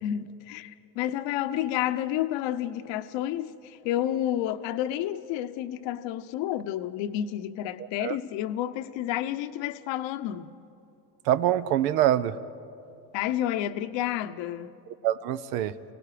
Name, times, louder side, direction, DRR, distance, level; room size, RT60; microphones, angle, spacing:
voice 1, 0.0-10.5 13.1-14.8, left 12 dB, 65° left, 1.0 m, -30 dB
voice 2, 7.8-8.2 11.2-12.4 14.9-15.7, right 12 dB, 75° right, 0.9 m, -25 dB
29.5 x 17.5 x 5.0 m
supercardioid pair, 95°, 48 cm